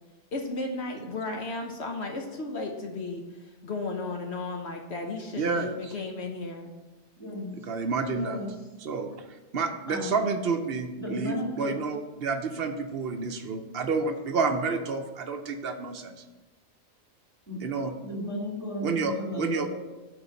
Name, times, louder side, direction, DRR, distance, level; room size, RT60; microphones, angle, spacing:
voice 1, 0.3-6.7, left 3 dB, 60° left, 2 dB, 1.0 m, -34 dB
voice 2, 5.3-5.9 7.7-8.4 8.8-9.1 9.5-16.2 17.6-17.9 18.8-19.7, right 4 dB, 55° right, 6 dB, 0.8 m, -29 dB
voice 3, 7.2-7.5 8.1-8.5 9.9-10.4 11.0-11.7 17.5-17.6 18.0-19.7, left 1 dB, 10° left, -4 dB, 2.3 m, -34 dB
6.7 x 4.5 x 6.2 m, 1.1 s
omnidirectional pair, 1.3 m